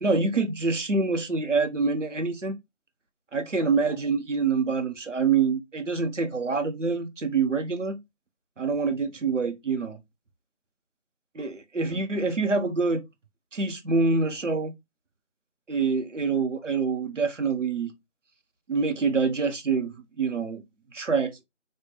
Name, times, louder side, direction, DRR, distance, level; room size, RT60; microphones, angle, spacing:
voice 1, 0.0-2.6 3.3-8.0 8.6-10.0 11.3-13.0 13.5-14.7 15.7-17.9 18.7-20.6 20.9-21.4, right 4 dB, 80° right, 1.3 m, -26 dB
5.5 x 2.7 x 3.1 m
figure-of-eight pair, 165°, 37 cm